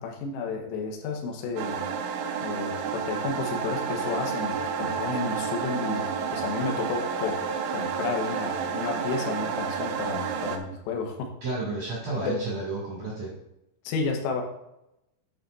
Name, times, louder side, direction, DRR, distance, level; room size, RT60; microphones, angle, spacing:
voice 1, 0.0-2.1 2.4-7.4 7.7-11.3 12.2-12.4 13.9-14.4, left 4 dB, 80° left, 2 dB, 3.8 m, -32 dB
sound 1, 1.6-10.6, right 6 dB, 75° right, 3.0 m, -30 dB
voice 2, 11.4-13.3, right 3 dB, 40° right, -6 dB, 3.4 m, -31 dB
10.0 x 8.8 x 2.7 m, 0.86 s
omnidirectional pair, 6.0 m